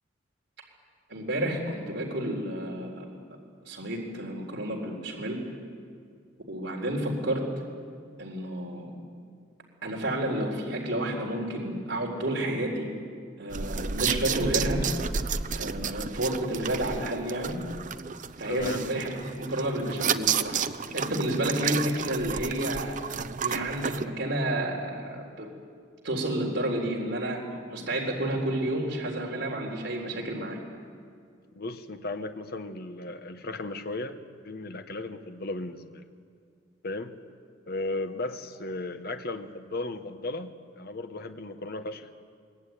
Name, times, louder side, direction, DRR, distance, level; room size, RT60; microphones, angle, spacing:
voice 1, 1.1-3.1 3.6-5.4 6.5-7.4 8.2-8.9 9.8-12.9 13.4-14.8 15.5-17.6 18.4-20.6 20.9-23.0 23.4-25.5 26.0-30.6, right 1 dB, 65° right, -1 dB, 4.0 m, -30 dB
sound 1, 13.5-24.1, right 6 dB, 45° right, 0.7 m, -31 dB
voice 2, 18.5-18.8 31.5-34.2 34.4-36.0 36.8-37.1 37.7-42.1, left 2 dB, 55° left, 7 dB, 1.3 m, -35 dB
23.5 x 20.5 x 9.4 m, 2.2 s
head